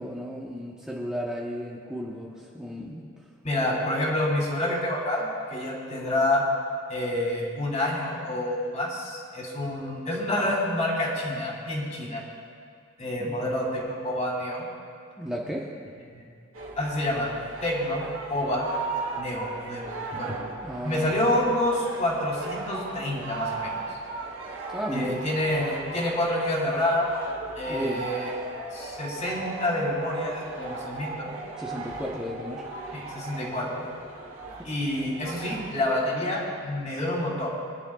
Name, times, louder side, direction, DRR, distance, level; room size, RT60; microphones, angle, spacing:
voice 1, 0.0-3.0 13.2-13.5 15.2-15.7 20.6-21.3 24.7-25.2 27.7-28.0 31.6-32.6 34.6-34.7, equal, 5° right, -5 dB, 1.0 m, -34 dB
voice 2, 3.4-6.4 6.9-12.2 13.0-14.6 16.1-16.3 16.7-17.3 17.6-18.7 19.1-20.4 20.8-23.7 24.9-27.1 27.5-28.3 28.7-31.3 32.9-33.8 34.6-37.5, left 1 dB, 35° left, -4 dB, 3.2 m, -28 dB
sound 1, 16.5-36.0, right 3 dB, 85° right, 1.9 m, -37 dB
24.0 x 10.5 x 2.4 m, 2.2 s
head